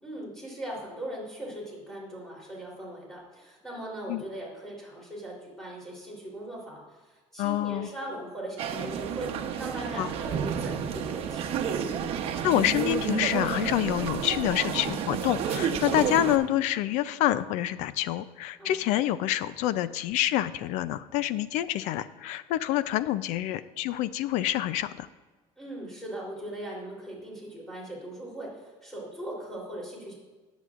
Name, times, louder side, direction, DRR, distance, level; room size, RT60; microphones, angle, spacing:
voice 1, 0.0-9.3 9.6-11.5 18.6-18.8 25.6-30.1, right 1 dB, 5° left, -4 dB, 3.5 m, -39 dB
voice 2, 7.4-7.9 10.0-10.1 12.4-25.1, left 13 dB, 80° left, 15 dB, 0.5 m, -27 dB
sound 1, 8.6-16.4, right 7 dB, 55° right, 0.9 m, -30 dB
20.0 x 8.1 x 2.5 m, 1.3 s
cardioid pair, 145°, 12 cm